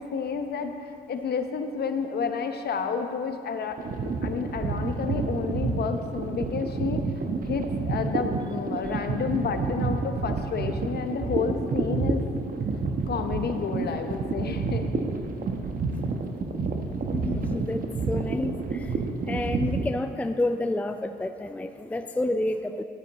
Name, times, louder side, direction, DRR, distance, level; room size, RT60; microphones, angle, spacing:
voice 1, 0.0-7.1 7.4-12.2 13.1-14.9, left 5 dB, 55° left, 7 dB, 0.9 m, -30 dB
sound 1, 3.8-19.9, right 4 dB, 45° right, 0.9 m, -29 dB
voice 2, 17.1-19.0 19.3-22.8, left 1 dB, 5° left, 8 dB, 0.4 m, -29 dB
11.5 x 8.6 x 4.1 m, 2.4 s
cardioid pair, 90°, 20 cm